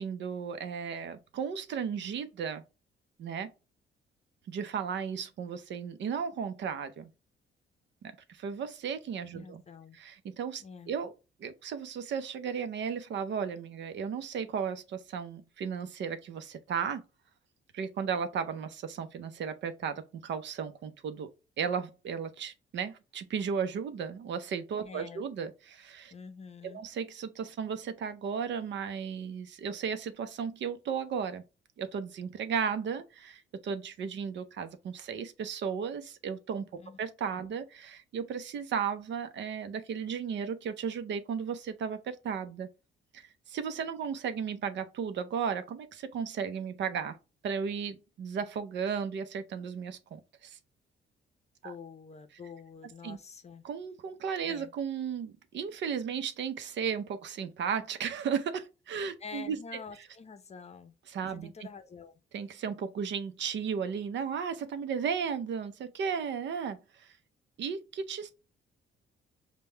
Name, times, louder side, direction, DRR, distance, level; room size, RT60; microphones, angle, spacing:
voice 1, 0.0-2.6 3.2-3.5 4.5-7.1 8.0-9.6 10.0-11.1 11.4-17.0 17.7-21.3 21.6-26.1 26.6-31.4 31.8-36.7 37.0-42.7 43.1-47.2 47.4-50.6 51.6-51.7 53.0-53.2 53.6-59.6 61.1-61.5 62.3-67.1 67.6-68.3, right 7 dB, 65° right, 0.7 m, -35 dB
voice 2, 9.3-10.0 10.6-10.9 24.8-25.2 26.1-26.8 36.8-37.0 51.6-53.6 54.4-54.7 59.2-61.0 61.3-62.2, left 5 dB, 35° left, 0.6 m, -47 dB
5.2 x 2.2 x 3.3 m
cardioid pair, 90°, 20 cm